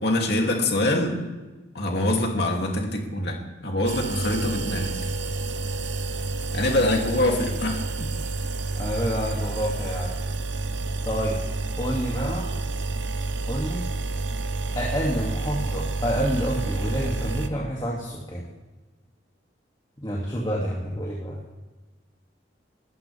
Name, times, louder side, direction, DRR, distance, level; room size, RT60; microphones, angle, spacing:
voice 1, 0.0-1.2 1.7-4.9 6.5-8.1, left 1 dB, 60° left, 0 dB, 2.9 m, -24 dB
sound 1, 3.9-17.5, right 3 dB, 70° right, 1.0 m, -29 dB
voice 2, 8.8-10.1 11.0-11.4 11.8-12.5 13.5-13.8 14.8-18.5 20.0-21.4, equal, 25° left, -4 dB, 2.5 m, -28 dB
29.0 x 14.0 x 3.5 m, 1.2 s
head